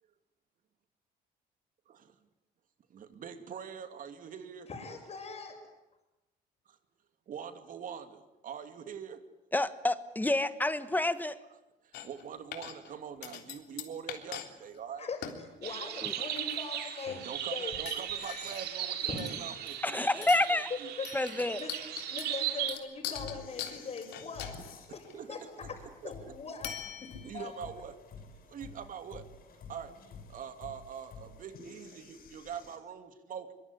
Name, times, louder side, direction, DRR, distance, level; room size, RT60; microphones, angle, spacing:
voice 1, 2.9-4.7 6.7-6.8 7.3-9.2 11.8-15.1 16.0-16.3 17.2-20.9 23.1-23.2 25.1-25.3 25.6-25.7 26.0-26.3 27.2-27.9 28.5-29.3 29.7-29.9 30.3-33.5, right 7 dB, 55° right, 9 dB, 2.7 m, -44 dB
voice 2, 4.7-5.6 15.0-17.8 19.0-19.3 20.7-21.7 22.1-24.6 24.9-25.4 25.7-25.8 26.0-26.7 27.0-27.5, left 4 dB, 40° left, -4 dB, 6.4 m, -41 dB
voice 3, 9.5-11.4 16.0-16.1 19.8-20.7 21.1-21.6, left 2 dB, 10° left, 13 dB, 1.3 m, -28 dB
sound 1, 11.9-12.2 12.5-12.9 13.2-14.5 14.7-14.8 15.2-15.4 16.1-16.7 17.0-17.3 17.9-18.8 19.2-19.9 20.2-20.6 21.0-25.1 26.6-27.5, left 10 dB, 80° left, 3.5 m, -42 dB
sound 2, 15.6-22.7, right 10 dB, 75° right, 2.6 m, -37 dB
sound 3, 17.7-32.8, left 4 dB, 60° left, 7.2 m, -52 dB
24.0 x 22.0 x 10.0 m, 0.99 s
cardioid pair, 110°, 17 cm